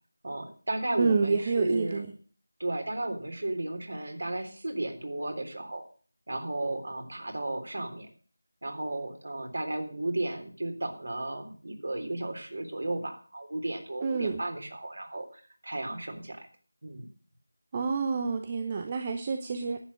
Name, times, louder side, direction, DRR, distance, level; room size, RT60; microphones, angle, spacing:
voice 1, 0.2-2.0 2.6-5.8 6.3-8.1 8.6-16.4 16.8-17.1, right 2 dB, 55° right, 6 dB, 3.6 m, -34 dB
voice 2, 1.0-2.1 14.0-14.4 17.7-19.8, right 4 dB, 20° right, 7 dB, 0.7 m, -28 dB
11.0 x 9.2 x 6.4 m, 0.42 s
figure-of-eight pair, 165°, 0 cm